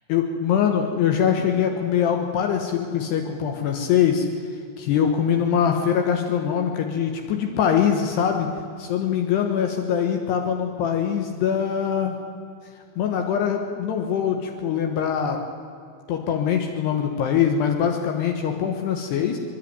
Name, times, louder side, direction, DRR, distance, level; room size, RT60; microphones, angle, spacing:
voice 1, 0.1-4.3 4.8-8.5 8.8-12.2 13.0-15.4 16.1-19.4, left 8 dB, 80° left, 3 dB, 3.4 m, -23 dB
25.5 x 12.0 x 9.6 m, 2.3 s
omnidirectional pair, 4.8 m